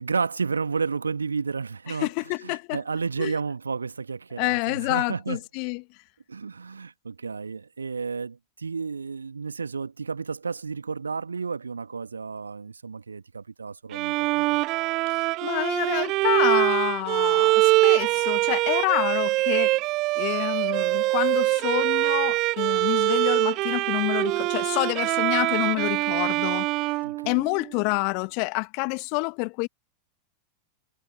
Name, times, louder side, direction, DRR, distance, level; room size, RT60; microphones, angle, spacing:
voice 1, 0.0-2.1 2.4-5.4 6.3-14.6 27.0-27.4, right 5 dB, 75° right, 2.0 m, -32 dB
voice 2, 2.0-2.8 3.2-3.4 4.4-5.8 15.4-19.8 20.2-26.7 27.3-29.7, left 38 dB, 45° left, 1.9 m, -28 dB
Bowed string instrument, 13.9-27.8, right 20 dB, 40° right, 1.5 m, -24 dB
figure-of-eight pair, 90°, 0 cm